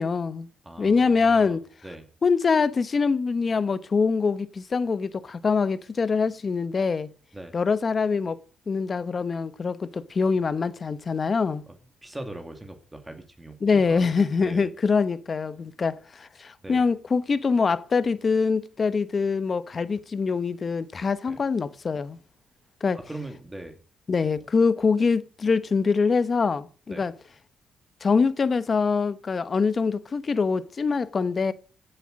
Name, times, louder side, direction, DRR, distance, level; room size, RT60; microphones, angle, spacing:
voice 1, 0.0-0.5 0.8-1.6 2.2-7.1 7.5-8.4 8.7-11.6 13.6-22.2 22.8-23.0 24.1-27.1 28.0-31.5, left 5 dB, 40° left, 1.0 m, -24 dB
voice 2, 0.6-2.1 7.3-7.5 12.0-14.1 14.4-14.7 16.6-16.8 21.3-21.4 22.9-23.8 26.9-27.1, right 1 dB, 10° right, 2.3 m, -40 dB
16.0 x 7.9 x 6.5 m
cardioid pair, 90°, 0 cm